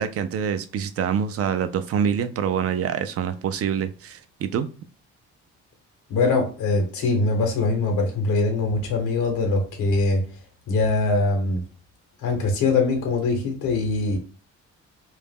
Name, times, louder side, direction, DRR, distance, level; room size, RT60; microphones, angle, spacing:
voice 1, 0.0-4.7, right 8 dB, 50° right, 0.4 m, -26 dB
voice 2, 6.1-10.3 10.7-11.6 12.2-14.2, left 3 dB, 85° left, 0.9 m, -22 dB
2.4 x 2.0 x 3.4 m
cardioid pair, 90°, 30 cm